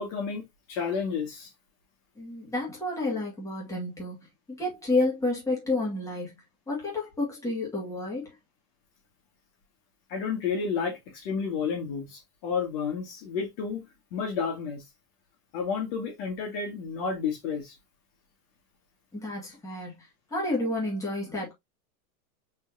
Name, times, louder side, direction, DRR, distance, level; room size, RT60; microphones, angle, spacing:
voice 1, 0.0-1.5 10.1-13.8 14.1-14.8 15.5-17.7, left 5 dB, 55° left, 1.9 m, -31 dB
voice 2, 2.2-4.2 4.5-8.3 19.1-20.1 20.3-21.5, left 2 dB, 5° left, 2.1 m, -30 dB
4.5 x 3.6 x 2.7 m
supercardioid pair, 145°, 44 cm